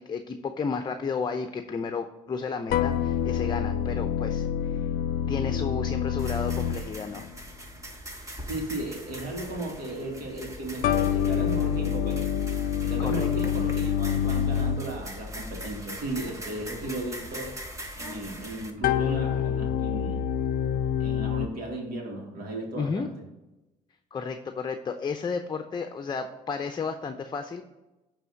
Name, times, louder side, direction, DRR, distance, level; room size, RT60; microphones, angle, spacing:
voice 1, 0.0-4.8 5.3-7.3 13.0-13.3 22.7-23.1 24.1-27.6, left 5 dB, 30° left, 7 dB, 0.7 m, -32 dB
sound 1, 2.7-7.4 10.8-15.1 18.8-21.5, left 9 dB, 70° left, 0.5 m, -27 dB
sound 2, 6.2-18.7, equal, 20° right, 1.4 m, -42 dB
voice 2, 8.5-12.3 12.8-17.5 17.9-20.2 21.0-23.1, right 2 dB, 70° right, 0 dB, 2.2 m, -35 dB
9.0 x 3.4 x 6.4 m, 1.0 s
supercardioid pair, 80°, 16 cm